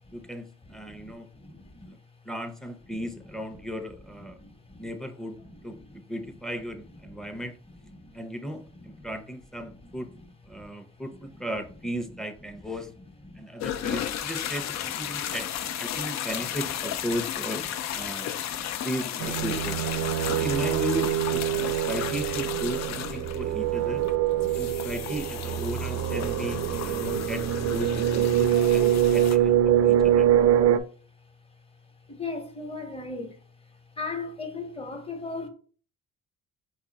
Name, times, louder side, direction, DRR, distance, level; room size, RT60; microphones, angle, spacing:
voice 1, 0.1-1.3 1.8-2.0 2.2-4.4 4.8-5.4 5.6-7.6 8.1-10.1 10.5-12.9 13.4-15.5 15.8-17.7 17.9-18.4 18.8-19.8 20.3-24.1 24.5-27.4 27.7-30.3, equal, ahead, 0.7 m, -36 dB
voice 2, 1.4-1.9 4.4-4.5 10.5-10.7 13.3-13.4 18.6-18.7 20.2-20.3 30.5-30.8 32.1-33.3 34.0-35.5, left 3 dB, 20° left, 1.1 m, -36 dB
sound 1, 13.6-29.4, left 10 dB, 65° left, 0.5 m, -34 dB
sound 2, 19.2-30.8, right 11 dB, 60° right, 0.4 m, -24 dB
4.6 x 2.4 x 4.0 m
cardioid pair, 90°, 30 cm